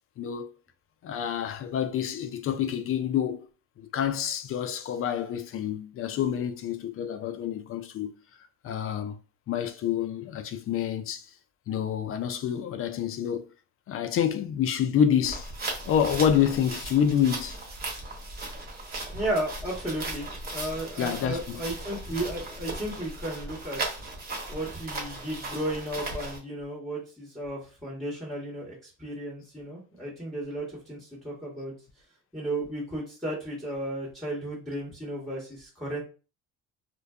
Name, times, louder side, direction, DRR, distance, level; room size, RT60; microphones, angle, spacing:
voice 1, 0.2-0.5 1.0-3.5 3.8-8.1 8.6-9.2 9.5-11.3 11.7-13.5 13.9-15.5 15.9-17.6 21.0-21.6, left 9 dB, 45° left, 0.4 m, -27 dB
sound 1, 15.2-26.4, right 2 dB, 30° right, 1.1 m, -37 dB
voice 2, 19.1-23.8 24.1-24.2 24.5-31.7 32.3-36.0, right 1 dB, ahead, 1.3 m, -34 dB
2.5 x 2.2 x 2.3 m
supercardioid pair, 80°, 31 cm